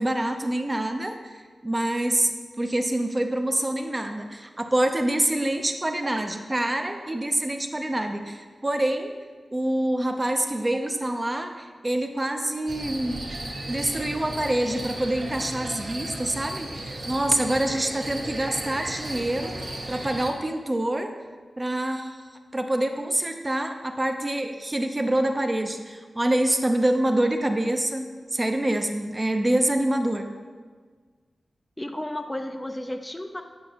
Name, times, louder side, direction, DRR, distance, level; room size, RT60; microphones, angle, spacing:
voice 1, 0.0-9.1 9.5-13.2 13.7-21.1 21.6-22.2 22.5-30.3, right 1 dB, 30° right, 5 dB, 0.6 m, -26 dB
sound 1, 12.7-20.3, right 1 dB, 70° right, 1.4 m, -35 dB
voice 2, 31.8-33.4, left 1 dB, 15° left, 5 dB, 0.5 m, -33 dB
8.6 x 5.2 x 2.9 m, 1.5 s
cardioid pair, 45°, 0 cm